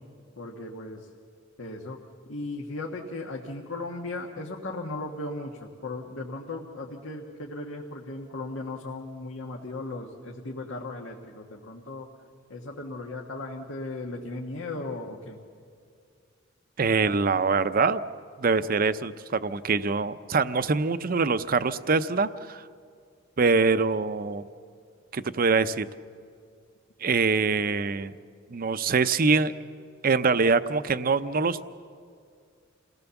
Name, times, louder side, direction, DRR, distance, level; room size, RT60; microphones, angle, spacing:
voice 1, 0.4-1.1 1.6-2.0 2.3-12.1 12.5-15.4, left 2 dB, 90° left, 0 dB, 1.6 m, -37 dB
voice 2, 16.8-18.0 18.4-22.6 23.4-24.4 25.1-25.9 27.0-28.1 28.5-29.5 30.0-31.6, right 4 dB, 45° right, 12 dB, 0.6 m, -24 dB
28.0 x 17.5 x 7.1 m, 2.3 s
head